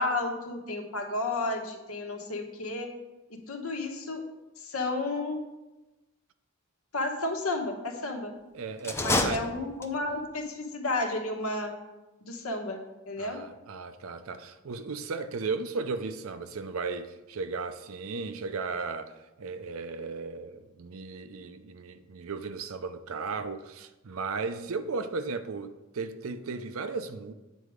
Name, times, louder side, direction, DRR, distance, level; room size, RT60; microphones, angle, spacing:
voice 1, 0.0-2.9 3.5-4.2 4.6-5.4 6.9-8.3 9.0-11.7 12.2-12.8 13.1-13.4, left 2 dB, 80° left, 1.2 m, -32 dB
voice 2, 8.5-9.4 13.2-27.3, right 4 dB, 70° right, 0.5 m, -35 dB
sound 1, 8.8-10.2, left 2 dB, 10° left, 0.6 m, -29 dB
8.3 x 4.7 x 5.0 m
head